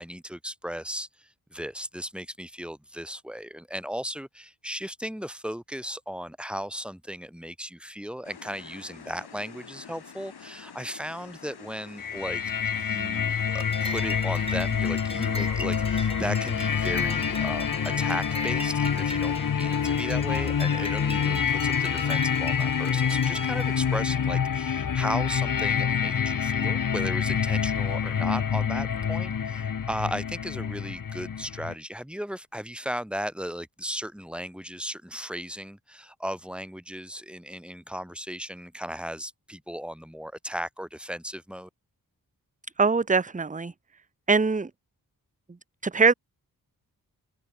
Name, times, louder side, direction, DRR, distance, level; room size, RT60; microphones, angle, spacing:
voice 1, 0.0-41.7, equal, 5° right, 3.4 m, -36 dB
sound 1, 8.2-24.2, left 6 dB, 80° left, 5.4 m, -47 dB
sound 2, 12.0-31.7, left 7 dB, 55° left, 1.2 m, -27 dB
sound 3, 13.5-23.7, left 1 dB, 15° left, 3.2 m, -38 dB
voice 2, 42.8-43.7 44.3-44.7 45.8-46.1, right 4 dB, 20° right, 0.8 m, -22 dB
cardioid pair, 70°, 38 cm